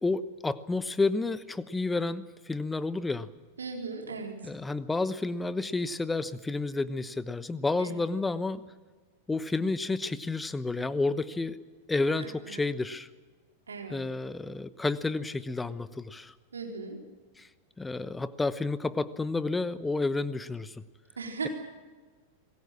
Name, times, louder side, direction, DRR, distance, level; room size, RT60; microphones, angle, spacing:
voice 1, 0.0-3.3 4.4-8.6 9.3-11.6 11.9-13.1 13.9-16.3 17.4-17.5 17.8-20.8, left 3 dB, 10° left, 16 dB, 1.0 m, -30 dB
voice 2, 3.6-4.3 7.8-7.9 12.2-12.3 13.7-14.0 16.5-17.0 21.2-21.5, right 4 dB, 70° right, 2 dB, 4.0 m, -37 dB
27.0 x 20.0 x 7.5 m, 1.4 s
figure-of-eight pair, 90°, 0 cm